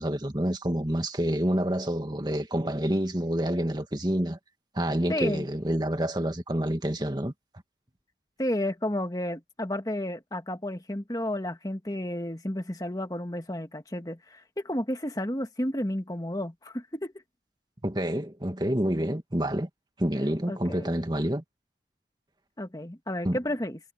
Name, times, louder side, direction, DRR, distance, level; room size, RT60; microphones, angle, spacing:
voice 1, 0.0-4.4 4.7-7.3 17.8-19.7 20.0-21.4 23.2-23.4, right 1 dB, 25° right, 2.0 m, -28 dB
voice 2, 5.1-5.5 8.4-17.1 20.5-20.9 22.6-23.8, left 1 dB, 20° left, 1.6 m, -32 dB
head